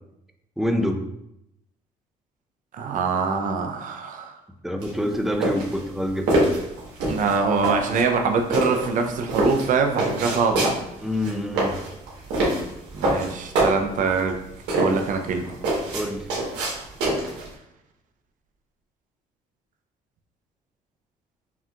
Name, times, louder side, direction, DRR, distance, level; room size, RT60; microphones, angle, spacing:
voice 1, 0.6-1.1 4.6-6.5 11.0-11.8 15.9-16.3, left 1 dB, ahead, 4 dB, 0.4 m, -26 dB
voice 2, 2.7-4.4 7.1-10.7 12.9-14.4 14.7-15.6, right 5 dB, 50° right, 4 dB, 0.6 m, -24 dB
sound 1, 4.8-17.5, right 1 dB, 90° right, 1.3 m, -25 dB
5.6 x 2.8 x 2.4 m, 0.82 s
cardioid pair, 110°, 17 cm